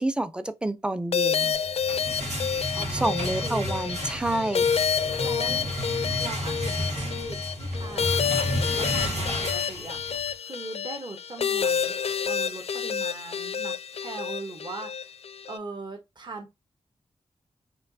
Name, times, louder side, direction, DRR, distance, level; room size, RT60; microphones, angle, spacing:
voice 1, 0.0-1.6 2.9-4.9, right 1 dB, 10° right, 0.5 m, -29 dB
sound 1, 1.1-15.6, left 7 dB, 60° left, 0.4 m, -29 dB
sound 2, 1.6-10.3, equal, 90° right, 2.0 m, -32 dB
voice 2, 2.7-3.1 3.4-3.8 5.2-5.7 6.2-8.3 8.7-11.9 12.2-15.1 15.5-16.5, right 3 dB, 40° right, 1.0 m, -40 dB
4.4 x 2.9 x 2.6 m
wide cardioid pair, 90°, 12 cm